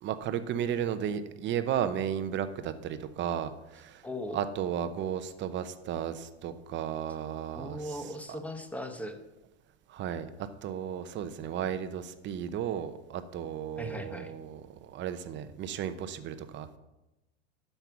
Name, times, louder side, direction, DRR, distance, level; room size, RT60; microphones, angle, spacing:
voice 1, 0.0-4.0 4.3-8.0 9.9-10.3 10.6-16.7, right 9 dB, 35° right, 11 dB, 0.8 m, -34 dB
voice 2, 4.0-4.4 7.5-9.2 13.8-14.3, left 1 dB, 5° left, 7 dB, 1.0 m, -38 dB
12.0 x 5.6 x 5.9 m, 0.99 s
hypercardioid pair, 115°, 34 cm